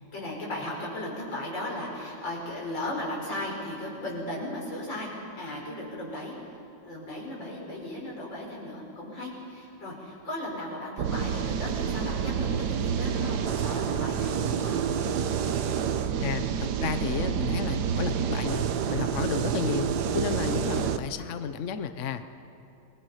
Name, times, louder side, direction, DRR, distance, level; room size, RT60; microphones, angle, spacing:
voice 1, 0.1-6.4 6.8-14.8 20.1-20.3, left 1 dB, 75° left, -3 dB, 5.9 m, -36 dB
sound 1, 11.0-21.0, right 7 dB, 65° right, 1.4 m, -28 dB
voice 2, 16.2-22.3, left 7 dB, 50° left, 9 dB, 0.9 m, -32 dB
28.0 x 21.0 x 5.7 m, 2.8 s
omnidirectional pair, 2.1 m